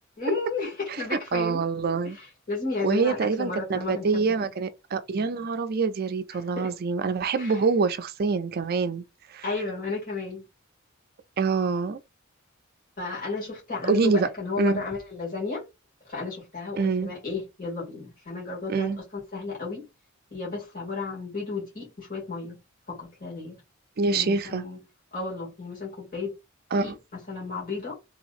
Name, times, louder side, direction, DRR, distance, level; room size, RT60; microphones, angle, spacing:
voice 1, 0.2-1.6 2.0-4.3 6.3-6.7 7.4-7.6 9.4-10.4 13.0-15.6 16.1-18.9 19.3-19.9 20.3-22.6 22.9-23.6 24.1-24.8 25.1-26.3 26.7-27.9, left 3 dB, 45° left, 2.0 m, -33 dB
voice 2, 1.3-2.2 2.8-9.0 9.3-9.4 11.4-12.0 13.9-14.3 14.6-14.8 16.8-17.1 18.7-19.0 24.0-24.6 26.7-26.9, right 4 dB, 50° right, 0.4 m, -25 dB
3.4 x 2.9 x 2.5 m
head